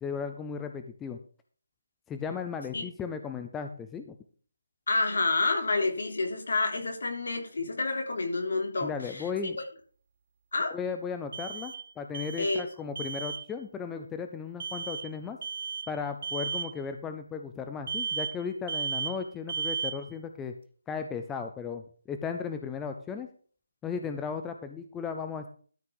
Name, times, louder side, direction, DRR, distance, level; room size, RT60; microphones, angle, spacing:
voice 1, 0.0-1.2 2.1-4.2 8.8-9.6 10.7-15.4 15.9-20.5 20.9-23.3 23.8-25.5, left 6 dB, 5° left, 6 dB, 0.4 m, -36 dB
voice 2, 4.9-9.2 10.5-10.7 12.4-12.6, left 3 dB, 60° left, 2 dB, 3.6 m, -29 dB
sound 1, 8.1-8.2 11.3-11.9 12.1-12.7 13.0-13.5 14.6-15.1 15.4-15.9 16.2-16.7 17.9-18.4 18.7-19.2 19.5-20.1, right 6 dB, 30° right, 0.7 m, -34 dB
13.0 x 5.7 x 5.3 m, 0.43 s
hypercardioid pair, 180°, 0 cm